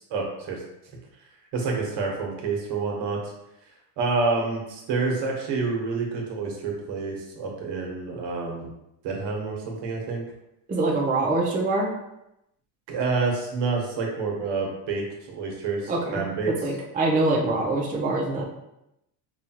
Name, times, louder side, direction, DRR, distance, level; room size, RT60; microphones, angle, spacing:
voice 1, 0.1-0.6 1.5-3.2 4.0-8.7 9.0-10.2 12.9-16.5, right 4 dB, 60° right, 0 dB, 1.2 m, -28 dB
voice 2, 10.7-11.9 15.9-16.2 16.6-18.4, right 2 dB, 20° right, -3 dB, 0.6 m, -24 dB
4.8 x 2.4 x 2.9 m, 0.85 s
cardioid pair, 115°, 47 cm